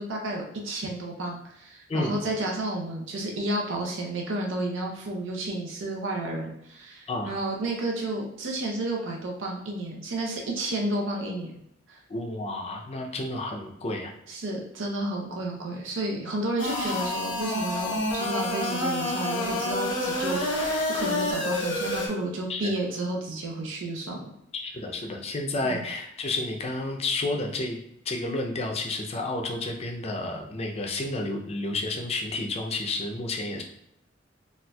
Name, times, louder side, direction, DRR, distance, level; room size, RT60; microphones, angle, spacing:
voice 1, 0.0-11.5 11.9-12.0 14.3-24.3 25.6-25.8, right 2 dB, 90° right, -1 dB, 0.6 m, -31 dB
voice 2, 1.9-2.2 7.1-7.3 12.1-14.1 22.5-22.7 24.5-27.8 28.1-33.6, left 2 dB, 35° left, 3 dB, 0.5 m, -31 dB
sound 1, 16.6-22.1, left 1 dB, 90° left, 1.0 m, -28 dB
4.1 x 2.4 x 2.3 m, 0.77 s
head